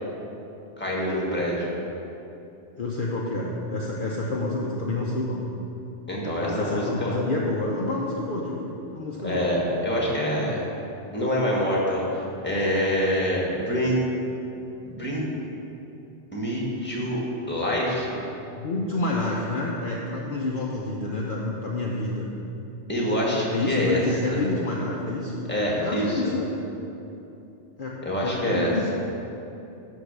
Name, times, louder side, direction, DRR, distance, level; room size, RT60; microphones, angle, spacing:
voice 1, 0.8-1.7 6.1-7.2 9.2-10.7 11.1-14.0 14.9-15.3 16.3-18.2 22.9-24.0 24.3-24.4 25.5-26.3 28.0-28.8, equal, 10° left, -4 dB, 1.6 m, -26 dB
voice 2, 2.8-5.5 6.4-9.5 18.5-22.3 23.5-26.5 27.8-28.9, left 2 dB, 50° left, -4 dB, 0.9 m, -28 dB
11.0 x 3.9 x 6.6 m, 2.9 s
omnidirectional pair, 1.2 m